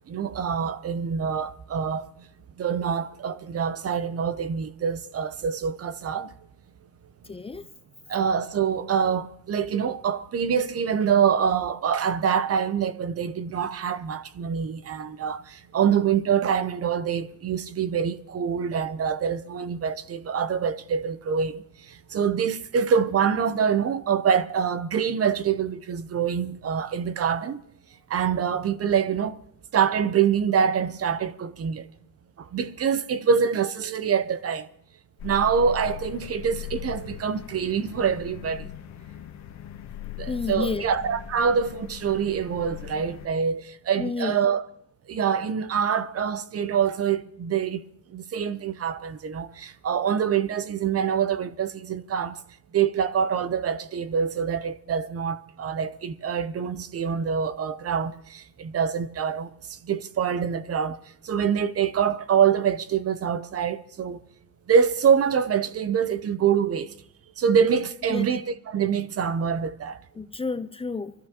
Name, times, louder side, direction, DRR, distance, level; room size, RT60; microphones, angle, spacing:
voice 1, 0.1-2.3 2.6-6.3 8.1-27.6 28.1-29.4 29.7-31.9 32.4-34.7 35.2-38.7 40.2-44.6 45.1-47.8 48.1-52.4 52.7-61.0 61.2-64.2 64.7-66.9 67.4-70.0, right 7 dB, 50° right, 0.7 m, -25 dB
voice 2, 7.3-7.7 40.3-40.8 44.0-44.4 68.1-68.3 70.2-71.1, left 4 dB, 20° left, 0.6 m, -30 dB
sound 1, 35.2-43.3, left 13 dB, 65° left, 0.9 m, -39 dB
24.0 x 13.0 x 2.9 m
cardioid pair, 90°, 30 cm